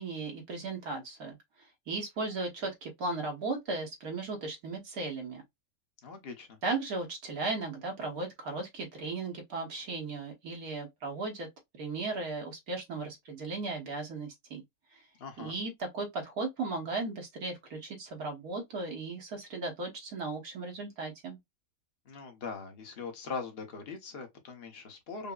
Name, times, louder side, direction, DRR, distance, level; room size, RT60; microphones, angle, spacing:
voice 1, 0.0-1.4 1.9-5.4 6.6-11.5 11.8-14.6 15.4-21.4, right 3 dB, 85° right, 1.8 m, -36 dB
voice 2, 6.0-6.6 15.2-15.6 22.0-25.3, left 4 dB, 45° left, 1.2 m, -41 dB
5.5 x 2.2 x 2.3 m
omnidirectional pair, 1.5 m